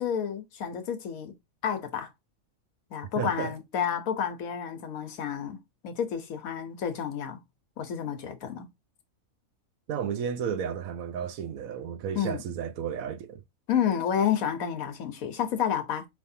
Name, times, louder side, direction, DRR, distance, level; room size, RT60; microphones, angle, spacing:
voice 1, 0.0-1.3 1.6-2.1 2.9-7.4 7.8-8.7 12.1-12.4 13.7-16.1, left 8 dB, 90° left, 1.3 m, -30 dB
voice 2, 3.2-3.5 9.9-13.4, right 7 dB, 90° right, 1.2 m, -33 dB
5.1 x 3.1 x 2.7 m
omnidirectional pair, 1.4 m